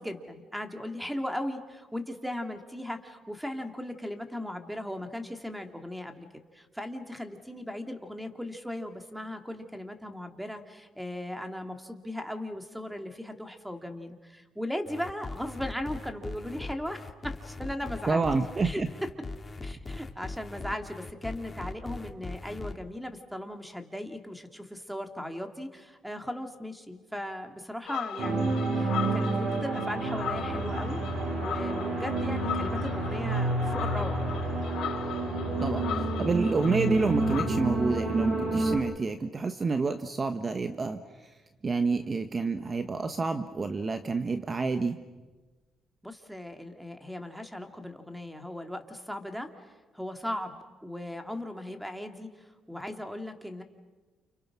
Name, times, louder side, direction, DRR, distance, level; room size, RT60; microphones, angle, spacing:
voice 1, 0.0-6.3 6.5-18.3 18.6-18.8 19.6-31.0 31.4-34.2 46.0-49.5 49.9-53.6, left 1 dB, 5° right, 6 dB, 2.8 m, -37 dB
sound 1, 14.9-22.7, left 3 dB, 30° left, 1.9 m, -40 dB
voice 2, 18.1-18.9 35.6-41.3 41.6-45.0, right 4 dB, 35° right, 8 dB, 1.3 m, -29 dB
sound 2, 27.9-37.5, left 9 dB, 80° left, 3.6 m, -39 dB
sound 3, 28.2-38.8, right 2 dB, 75° right, 6.7 m, -29 dB
30.0 x 29.5 x 6.2 m, 1.2 s
cardioid pair, 90°, 0 cm